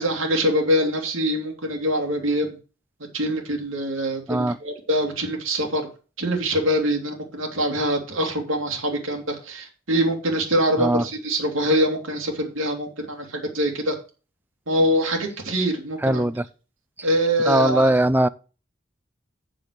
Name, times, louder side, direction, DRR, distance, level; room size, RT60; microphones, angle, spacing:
voice 1, 0.0-2.5 3.1-5.8 6.2-13.9 14.7-16.3 17.0-18.0, equal, 85° right, 2.7 m, -24 dB
voice 2, 16.0-16.4 17.5-18.3, right 1 dB, 10° right, 0.4 m, -20 dB
7.7 x 6.7 x 6.6 m
head